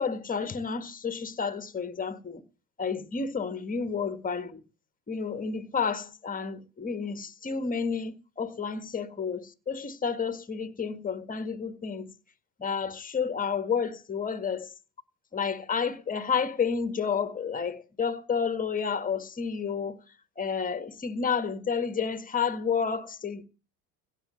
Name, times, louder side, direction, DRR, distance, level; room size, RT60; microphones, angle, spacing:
voice 1, 0.0-2.4 2.8-4.6 5.1-12.1 12.6-14.7 15.3-20.0 20.4-23.4, left 6 dB, 20° left, 1.7 m, -30 dB
16.5 x 8.0 x 7.7 m
supercardioid pair, 110°, 39 cm